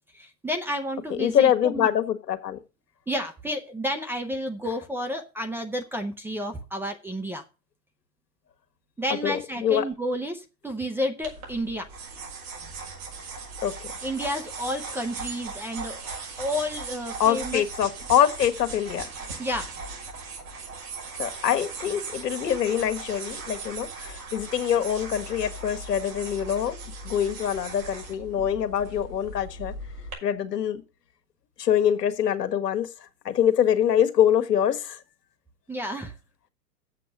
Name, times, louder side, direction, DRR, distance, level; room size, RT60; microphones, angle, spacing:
voice 1, 0.1-1.9 3.1-7.4 9.0-11.9 14.0-16.0 16.4-17.6 19.4-19.7 35.7-36.1, equal, 5° right, 0.6 m, -31 dB
voice 2, 1.1-2.6 9.2-9.8 13.6-13.9 17.2-19.1 21.2-26.7 27.0-29.7 30.2-30.8 31.6-32.9 33.2-35.0, left 9 dB, 75° left, 1.6 m, -24 dB
sound 1, 11.2-30.1, right 4 dB, 60° right, 6.2 m, -38 dB
7.6 x 7.6 x 6.5 m
hypercardioid pair, 120°, 49 cm